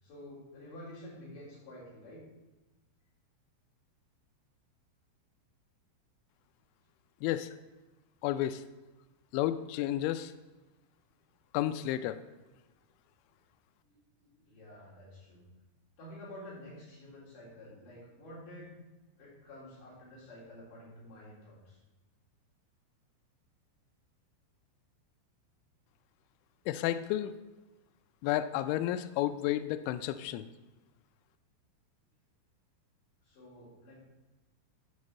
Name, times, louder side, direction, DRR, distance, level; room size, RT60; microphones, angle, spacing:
voice 1, 0.0-2.2 13.9-15.4 16.0-18.7 19.2-21.8 33.2-33.9, left 1 dB, 45° left, -8 dB, 5.2 m, -50 dB
voice 2, 7.2-7.5 8.2-8.6 9.3-10.3 11.5-12.2 26.7-27.3 28.2-30.4, left 13 dB, 90° left, 10 dB, 2.7 m, -31 dB
11.5 x 5.5 x 5.4 m, 1.1 s
omnidirectional pair, 6.0 m